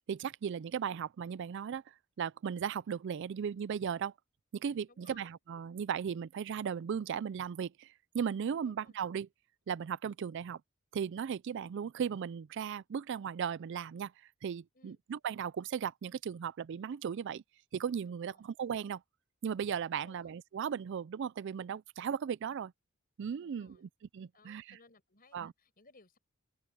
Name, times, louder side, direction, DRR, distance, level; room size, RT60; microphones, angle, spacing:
voice 1, 0.1-4.1 4.5-9.3 9.7-10.6 10.9-14.1 14.4-17.4 17.7-19.0 19.4-22.7 23.2-24.8 25.3-25.5, right 7 dB, 55° right, 0.3 m, -37 dB
voice 2, 4.9-5.4 8.6-9.0 14.7-15.0 18.2-18.5 19.9-20.3 23.4-23.9 24.3-26.2, left 3 dB, 45° left, 5.3 m, -62 dB
open air
head